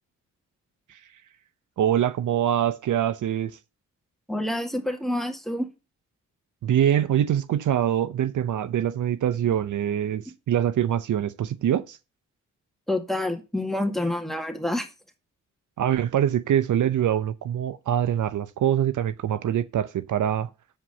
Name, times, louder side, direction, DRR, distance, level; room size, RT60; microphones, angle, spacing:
voice 1, 1.8-3.6 6.6-12.0 15.8-20.5, right 10 dB, 70° right, 0.7 m, -24 dB
voice 2, 4.3-5.7 12.9-14.9, left 1 dB, ahead, 1.9 m, -27 dB
7.4 x 5.0 x 6.8 m
cardioid pair, 55°, 32 cm